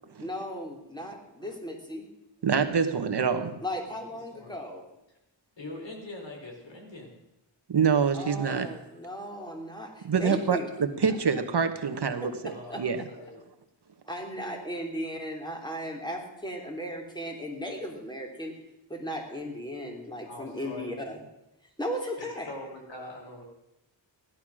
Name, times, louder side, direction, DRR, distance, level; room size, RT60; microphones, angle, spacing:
voice 1, 0.2-2.1 3.6-4.8 8.1-10.7 12.4-12.8 14.1-18.5 18.9-21.2 21.8-22.5, equal, 10° left, 1 dB, 3.1 m, -36 dB
voice 2, 2.4-3.5 7.7-8.7 10.0-13.0, right 6 dB, 60° right, 8 dB, 1.3 m, -26 dB
voice 3, 5.6-7.2 12.5-13.4 20.2-20.9 22.0-23.4, left 2 dB, 70° left, 1 dB, 4.3 m, -43 dB
16.0 x 12.0 x 6.3 m, 0.90 s
wide cardioid pair, 105°, 45 cm